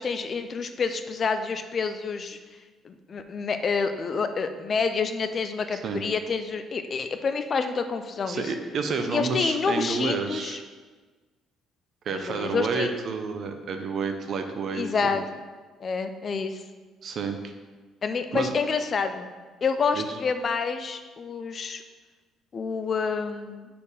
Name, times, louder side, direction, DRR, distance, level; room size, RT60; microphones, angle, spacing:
voice 1, 0.0-2.4 2.8-8.5 9.1-10.6 12.1-12.9 14.7-15.2 15.8-16.6 18.0-19.3 19.6-21.8 22.5-23.7, left 5 dB, 30° left, 8 dB, 0.4 m, -28 dB
voice 2, 8.3-10.6 12.0-15.1 17.0-17.4 18.3-18.5 19.9-20.1, right 5 dB, 40° right, 6 dB, 0.6 m, -30 dB
5.0 x 4.3 x 5.5 m, 1.4 s
cardioid pair, 170°, 0 cm